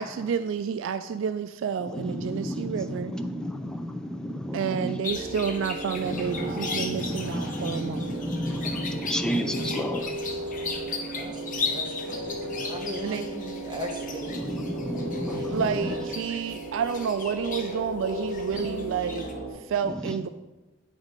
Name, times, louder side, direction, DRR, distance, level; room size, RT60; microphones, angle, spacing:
voice 1, 0.0-3.1 4.5-8.1 13.0-13.2 15.5-19.3 19.5-20.3, right 7 dB, 75° right, 11 dB, 0.3 m, -30 dB
voice 2, 1.8-5.0 6.0-10.3 10.6-10.7 11.3-11.6 14.3-16.0 19.8-20.2, equal, 5° left, 7 dB, 0.4 m, -32 dB
sound 1, 5.0-19.3, left 5 dB, 45° left, 1.0 m, -37 dB
sound 2, 5.1-19.5, right 1 dB, 45° right, 2.1 m, -35 dB
voice 3, 11.1-14.5 15.2-15.6, equal, 25° right, 1 dB, 1.1 m, -38 dB
8.7 x 4.0 x 5.2 m, 1.1 s
head